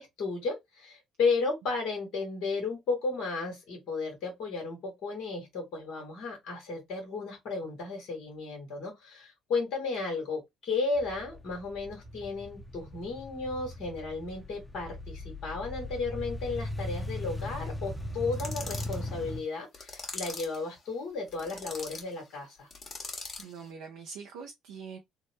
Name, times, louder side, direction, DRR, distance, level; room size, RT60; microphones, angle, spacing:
voice 1, 0.0-22.7, left 4 dB, 65° left, 1.3 m, -34 dB
sound 1, 10.9-19.4, left 1 dB, 10° left, 0.8 m, -39 dB
sound 2, 18.3-19.0 19.7-20.6 21.3-22.1 22.7-23.5, left 3 dB, 45° left, 1.3 m, -41 dB
voice 2, 23.1-25.0, right 5 dB, 75° right, 0.5 m, -44 dB
3.5 x 2.0 x 2.8 m
hypercardioid pair, 55°, 0 cm